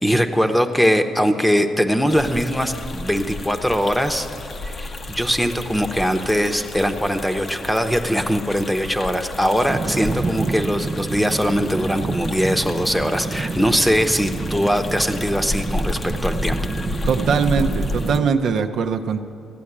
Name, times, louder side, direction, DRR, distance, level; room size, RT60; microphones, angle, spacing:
voice 1, 0.0-4.3 4.6-16.6 17.0-17.1, equal, 5° left, 7 dB, 0.9 m, -21 dB
sound 1, 2.1-18.2, left 2 dB, 40° left, 0.8 m, -32 dB
sound 2, 9.7-18.3, right 4 dB, 35° right, 0.4 m, -28 dB
voice 2, 17.1-19.2, right 6 dB, 65° right, 6 dB, 0.7 m, -21 dB
14.0 x 8.6 x 9.8 m, 2.6 s
cardioid pair, 90°, 0 cm